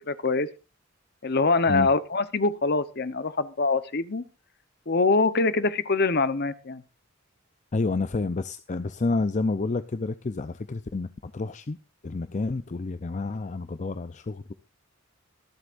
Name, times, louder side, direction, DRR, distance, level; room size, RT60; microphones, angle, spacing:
voice 1, 0.1-0.5 1.2-4.2 4.9-6.8, left 3 dB, 50° left, 0.9 m, -24 dB
voice 2, 7.7-11.8 12.0-14.5, left 3 dB, 35° left, 0.5 m, -29 dB
24.0 x 8.1 x 2.5 m
head